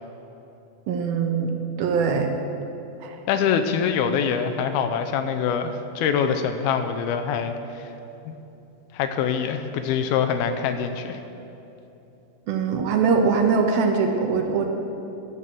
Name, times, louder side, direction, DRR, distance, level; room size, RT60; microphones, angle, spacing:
voice 1, 0.9-1.5 1.8-2.3 3.0-3.1 12.5-14.7, right 5 dB, 75° right, 3 dB, 2.7 m, -22 dB
voice 2, 3.3-7.6 8.3-8.4 8.9-11.2, left 7 dB, 85° left, 7 dB, 2.5 m, -24 dB
14.5 x 7.0 x 7.5 m, 3.0 s
omnidirectional pair, 4.5 m